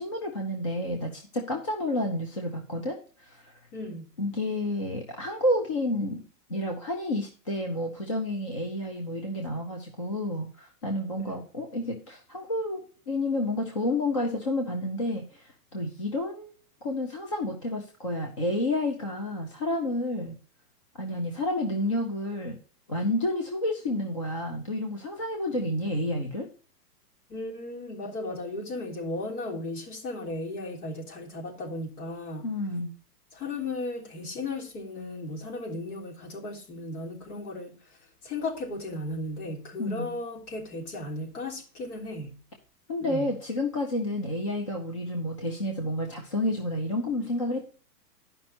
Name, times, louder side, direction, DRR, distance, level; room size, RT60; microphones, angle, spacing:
voice 1, 0.0-3.5 4.2-6.2 6.5-16.5 16.8-20.4 21.0-22.6 22.9-26.5 32.4-32.9 39.8-40.1 42.9-47.7, left 1 dB, 20° left, 0.5 m, -30 dB
voice 2, 3.7-4.1 11.3-11.4 27.3-32.5 33.3-42.4 43.0-43.3, left 2 dB, 65° left, 3.6 m, -36 dB
11.5 x 5.4 x 4.2 m
hypercardioid pair, 175°, 47 cm